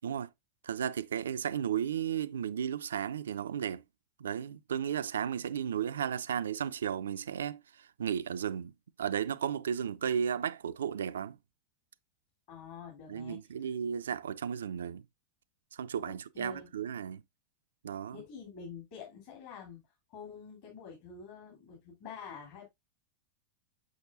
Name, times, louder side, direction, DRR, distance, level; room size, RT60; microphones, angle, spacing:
voice 1, 0.6-3.8 4.2-8.7 9.0-11.4 13.1-15.0 15.7-17.2 17.8-18.2, right 8 dB, 65° right, 0.3 m, -34 dB
voice 2, 12.5-13.4 16.0-16.7 18.1-19.8 20.1-22.7, left 6 dB, 50° left, 2.8 m, -47 dB
6.4 x 6.1 x 2.5 m
figure-of-eight pair, 90°, 0 cm